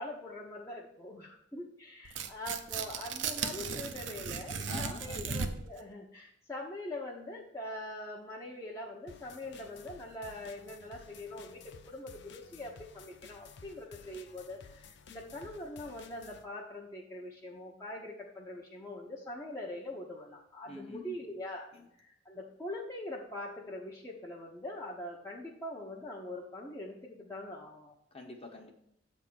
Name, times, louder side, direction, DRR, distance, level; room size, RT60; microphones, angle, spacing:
voice 1, 0.0-21.7 22.0-27.9, left 1 dB, 15° left, -4 dB, 0.9 m, -43 dB
Tearing, 2.0-5.8, right 6 dB, 70° right, 0.7 m, -36 dB
voice 2, 4.7-5.3 14.0-14.3 20.6-21.2 21.7-21.9 28.1-28.7, left 3 dB, 30° left, 2 dB, 1.2 m, -47 dB
sound 1, 9.1-16.4, left 5 dB, 60° left, 0.6 m, -54 dB
7.9 x 3.6 x 6.2 m, 0.76 s
head